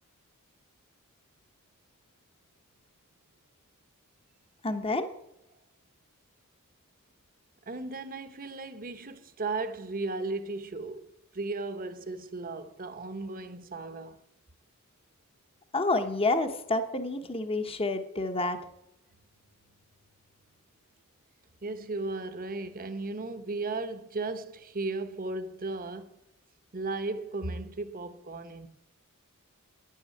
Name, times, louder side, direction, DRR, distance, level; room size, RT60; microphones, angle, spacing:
voice 1, 4.6-5.1 15.7-18.6, left 2 dB, 25° left, 1.0 m, -28 dB
voice 2, 7.7-14.2 21.6-26.1 26.7-28.7, right 3 dB, 40° right, 1.1 m, -35 dB
11.0 x 9.5 x 8.5 m
head